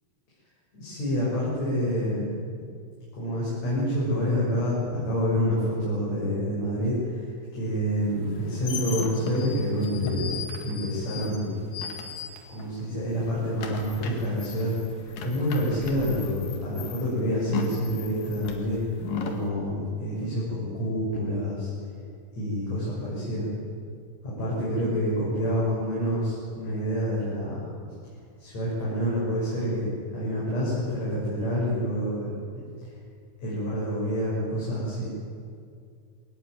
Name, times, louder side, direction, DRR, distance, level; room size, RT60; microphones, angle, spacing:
voice 1, 0.7-2.3 3.1-10.3 10.6-11.6 12.5-21.7 22.3-23.5 24.2-27.7 28.4-32.9 33.4-35.1, equal, 55° left, -7 dB, 7.5 m, -28 dB
sound 1, 8.2-12.8 13.1-19.5, left 6 dB, 90° left, 3.8 m, -37 dB
21.5 x 19.5 x 9.4 m, 2.3 s
omnidirectional pair, 3.8 m